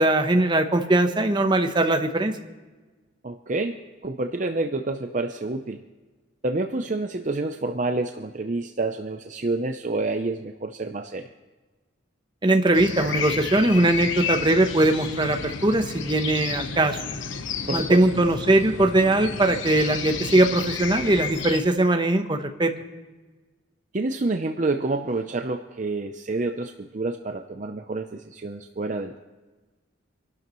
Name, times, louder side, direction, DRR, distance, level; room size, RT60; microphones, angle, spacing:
voice 1, 0.0-2.3 12.4-17.0 17.7-22.7, right 2 dB, 25° right, 5 dB, 0.9 m, -20 dB
voice 2, 3.2-5.8 6.4-11.2 17.7-18.1 23.9-29.2, right 2 dB, 40° right, 5 dB, 0.6 m, -28 dB
sound 1, 12.7-21.6, left 5 dB, 80° left, 1.0 m, -32 dB
25.5 x 12.0 x 3.1 m, 1.3 s
head